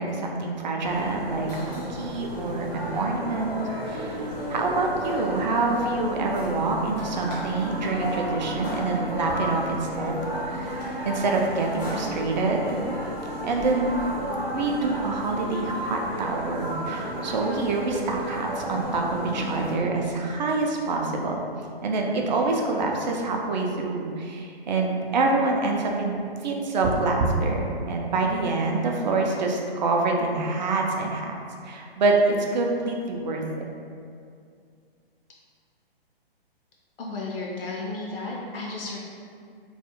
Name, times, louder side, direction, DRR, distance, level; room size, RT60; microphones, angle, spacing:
voice 1, 0.0-1.5 1.9-3.5 3.8-12.8 13.4-21.4 21.8-31.3 31.6-33.4, right 3 dB, 50° right, 0 dB, 0.4 m, -26 dB
sound 1, 0.8-19.7, equal, 15° left, 0.4 m, -32 dB
voice 2, 37.0-39.0, left 2 dB, 65° left, -3 dB, 0.5 m, -33 dB
2.3 x 2.0 x 2.9 m, 2.3 s
figure-of-eight pair, 130°, 30 cm